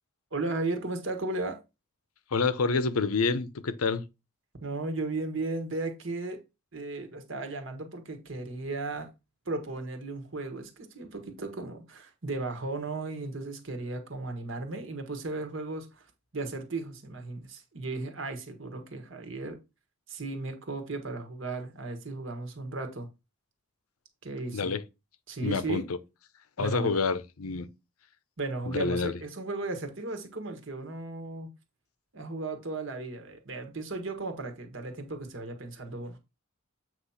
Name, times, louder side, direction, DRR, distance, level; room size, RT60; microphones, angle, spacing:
voice 1, 0.3-1.6 4.6-6.4 6.7-9.1 9.4-19.6 20.1-23.1 24.2-24.7 25.3-25.9 26.6-27.0 28.4-31.5 32.1-36.2, right 3 dB, 60° right, 1.5 m, -35 dB
voice 2, 2.3-4.1 24.5-24.8 25.4-25.8 26.6-27.7 28.7-29.1, left 4 dB, 85° left, 0.7 m, -28 dB
8.1 x 3.0 x 5.7 m
head